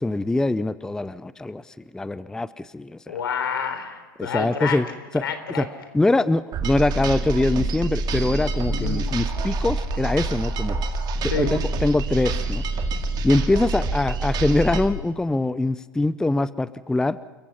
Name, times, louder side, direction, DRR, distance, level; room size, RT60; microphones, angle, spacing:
voice 1, 0.0-3.2 4.2-4.9 5.1-5.2 5.6-5.7 5.9-10.9 11.2-12.6 13.2-17.2, left 2 dB, 5° left, 17 dB, 0.5 m, -23 dB
voice 2, 3.1-4.8 5.2-5.7 8.7-9.1 11.3-11.5, left 6 dB, 80° left, 8 dB, 4.0 m, -28 dB
sound 1, 6.5-14.9, right 3 dB, 35° right, 2.2 m, -26 dB
29.0 x 16.0 x 5.7 m, 1.4 s
hypercardioid pair, 105°, 12 cm